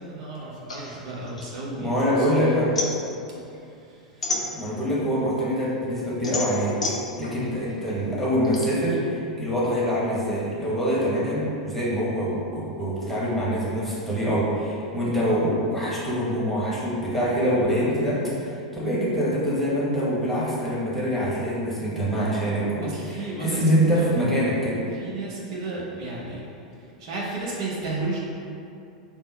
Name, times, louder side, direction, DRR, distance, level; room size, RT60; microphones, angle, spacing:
voice 1, 0.0-2.7 3.6-4.3 7.2-7.4 22.8-23.6 23.9-24.2 24.9-26.5 26.8-28.2, right 2 dB, 55° right, -5 dB, 0.9 m, -33 dB
sound 1, 0.7-2.2 2.5-5.0 5.5-8.6, left 2 dB, 80° left, 0.5 m, -31 dB
voice 2, 1.8-2.7 4.5-6.7 7.2-24.8, equal, 5° left, -8 dB, 1.1 m, -25 dB
3.6 x 2.1 x 3.9 m, 2.6 s
figure-of-eight pair, 90°, 3 cm